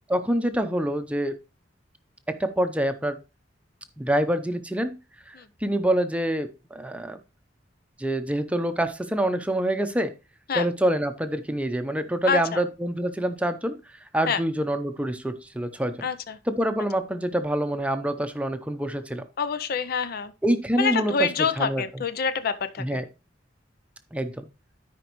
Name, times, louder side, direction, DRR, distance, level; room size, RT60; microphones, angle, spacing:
voice 1, 0.1-1.4 2.3-3.2 4.0-5.0 5.3-7.2 8.0-10.1 10.5-13.8 14.1-16.1 16.5-19.2 20.4-21.8 22.8-23.0 24.1-24.5, right 1 dB, 5° right, 0.7 m, -26 dB
voice 2, 12.3-12.6 14.3-14.4 16.0-16.4 19.4-20.3 20.8-23.0, left 6 dB, 55° left, 0.5 m, -26 dB
12.5 x 5.1 x 3.0 m
head